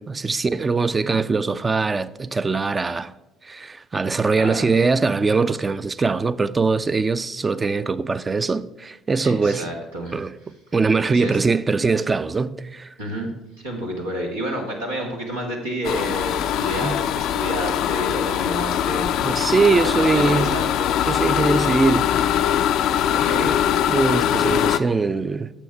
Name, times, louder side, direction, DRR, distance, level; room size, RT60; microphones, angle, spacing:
voice 1, 0.0-3.1 3.4-9.6 10.1-10.3 10.7-12.9 16.8-17.0 19.2-20.6 21.1-22.1 23.9-25.5, right 4 dB, 25° right, 0.5 m, -22 dB
voice 2, 4.4-4.7 9.2-10.2 11.1-11.4 13.0-21.0 23.1-23.9, equal, 90° right, 1.8 m, -30 dB
sound 1, 15.8-24.8, left 10 dB, 65° left, 0.4 m, -22 dB
9.0 x 7.1 x 4.7 m
hypercardioid pair, 55°, 0 cm